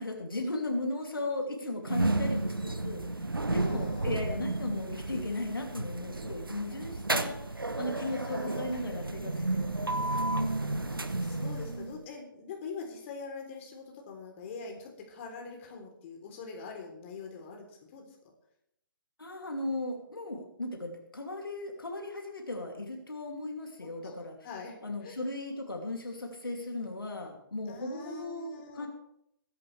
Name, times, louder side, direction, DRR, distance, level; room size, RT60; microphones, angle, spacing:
voice 1, 0.0-10.5 19.2-24.4 24.8-28.9, left 2 dB, 80° left, 2 dB, 2.8 m, -37 dB
sound 1, 1.8-12.0, right 2 dB, 90° right, 1.1 m, -32 dB
voice 2, 3.4-4.3 7.8-8.8 10.9-17.6 17.9-18.1 24.0-24.8 25.0-25.2 27.7-28.9, left 4 dB, 35° left, 1 dB, 3.5 m, -44 dB
21.5 x 11.0 x 3.4 m, 0.78 s
figure-of-eight pair, 135°, 11 cm